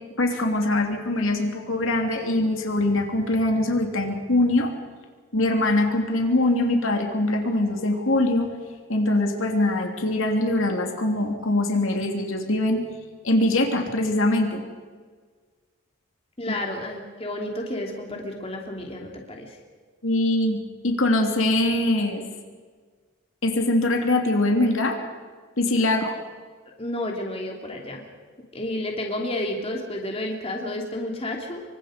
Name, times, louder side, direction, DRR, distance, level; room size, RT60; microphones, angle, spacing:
voice 1, 0.2-4.7 5.3-8.5 8.9-12.8 13.2-14.6 20.0-22.2 23.4-25.0 25.6-26.1, left 1 dB, 70° left, 3 dB, 2.9 m, -22 dB
voice 2, 16.4-19.6 26.8-28.0 28.5-31.6, left 1 dB, 25° left, 1 dB, 2.9 m, -31 dB
27.0 x 24.5 x 5.2 m, 1.6 s
head